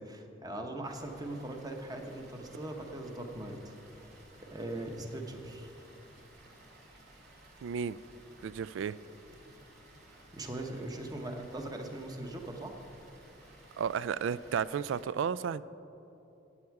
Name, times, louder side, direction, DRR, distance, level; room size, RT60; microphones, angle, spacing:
voice 1, 0.0-3.7 4.4-5.7 10.3-12.7, right 1 dB, 20° right, 3 dB, 1.0 m, -40 dB
Water, 0.8-15.0, right 1 dB, 55° right, 2.1 m, -57 dB
voice 2, 7.6-8.0 8.4-9.0 13.8-15.6, right 7 dB, 70° right, 18 dB, 0.3 m, -33 dB
17.0 x 8.5 x 4.7 m, 3.0 s
head